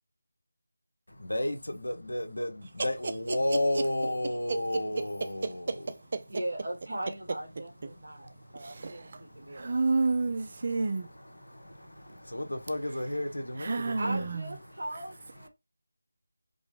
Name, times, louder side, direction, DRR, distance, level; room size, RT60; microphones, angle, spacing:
voice 1, 1.2-5.9 8.2-8.6 9.2-9.8 10.6-14.3, left 1 dB, 90° left, 1.1 m, -33 dB
voice 2, 4.5-5.8 6.1-6.2 8.8-9.0 9.5-11.1 13.6-14.4, right 3 dB, 40° right, 0.5 m, -30 dB
voice 3, 6.3-9.9 14.0-15.5, right 1 dB, 70° right, 1.7 m, -39 dB
5.2 x 2.2 x 3.2 m
figure-of-eight pair, 170°, 0 cm